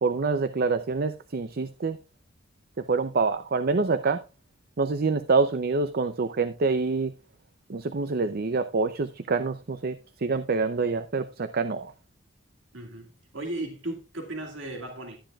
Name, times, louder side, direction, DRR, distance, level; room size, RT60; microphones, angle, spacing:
voice 1, 0.0-2.0 2.8-4.2 4.8-7.1 7.7-9.9 10.2-11.9, right 4 dB, 50° right, 0.6 m, -26 dB
voice 2, 12.7-13.1 13.3-15.2, right 2 dB, 70° right, 2.2 m, -35 dB
12.5 x 10.0 x 2.4 m
head